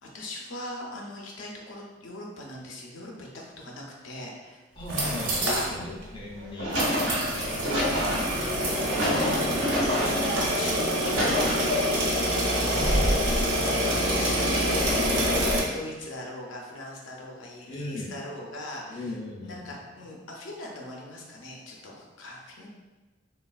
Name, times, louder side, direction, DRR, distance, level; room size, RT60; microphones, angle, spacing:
voice 1, 0.0-4.6 5.5-5.7 7.5-11.4 11.7-12.3 12.6-12.8 13.6-19.1 19.4-22.7, left 1 dB, 85° left, -1 dB, 0.6 m, -40 dB
voice 2, 4.8-7.1 12.4-14.2 17.7-18.1 18.9-19.8, left 1 dB, 25° left, -4 dB, 0.4 m, -38 dB
sound 1, 4.8-5.7 6.0-6.1 6.7-15.6, equal, 75° right, 0.6 m, -26 dB
sound 2, 6.3-10.4 10.8-12.1 12.7-13.4, equal, 90° right, 1.0 m, -28 dB
3.1 x 2.3 x 2.3 m, 1.2 s
head